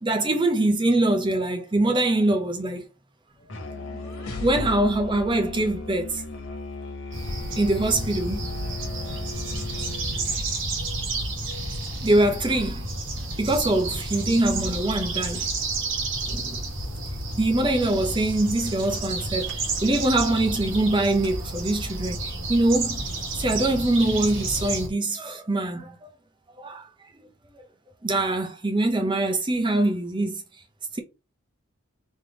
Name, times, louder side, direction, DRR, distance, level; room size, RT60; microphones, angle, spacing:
voice 1, 0.0-2.8 3.9-4.0 4.4-6.2 7.5-8.4 12.0-12.9 13.4-15.5 16.3-16.6 17.4-23.0 23.3-25.9 26.6-26.8 27.2-27.3 28.0-30.3, right 2 dB, 20° right, 0.8 m, -23 dB
sound 1, 3.4-6.6, left 2 dB, 85° left, 1.6 m, -38 dB
Musical instrument, 3.5-10.5, left 3 dB, 55° left, 1.1 m, -37 dB
sound 2, 7.1-24.9, right 2 dB, 60° right, 1.1 m, -31 dB
3.5 x 3.2 x 3.7 m
head